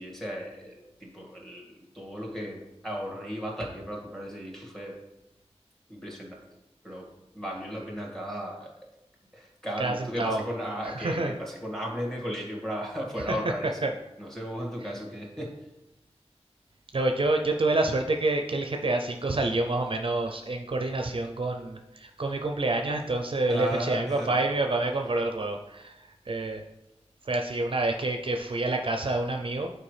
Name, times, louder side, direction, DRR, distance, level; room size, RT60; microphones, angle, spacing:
voice 1, 0.0-5.0 5.9-6.4 6.8-7.1 7.3-8.7 9.3-13.9 14.2-15.6 23.5-24.4, equal, 5° left, -2 dB, 1.9 m, -35 dB
voice 2, 9.8-10.4 10.8-11.3 13.3-13.4 13.8-13.9 16.9-26.6 27.2-29.7, right 2 dB, 50° right, 4 dB, 0.5 m, -28 dB
8.7 x 4.5 x 3.3 m, 0.93 s
wide cardioid pair, 75°, 11 cm